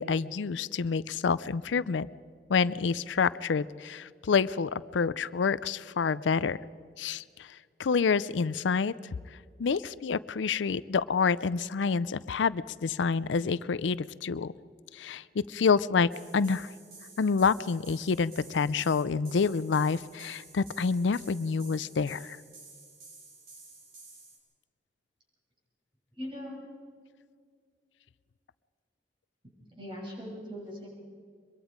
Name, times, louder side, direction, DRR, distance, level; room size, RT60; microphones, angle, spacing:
voice 1, 0.0-2.1 2.5-6.6 7.0-8.9 9.6-14.5 14.9-16.7 17.2-22.4, left 5 dB, 90° left, 18 dB, 0.5 m, -28 dB
sound 1, 16.1-24.4, right 3 dB, 60° right, 6.0 m, -52 dB
voice 2, 26.2-26.6 29.8-30.9, equal, 30° right, -3 dB, 6.6 m, -40 dB
24.0 x 22.0 x 5.1 m, 2.1 s
head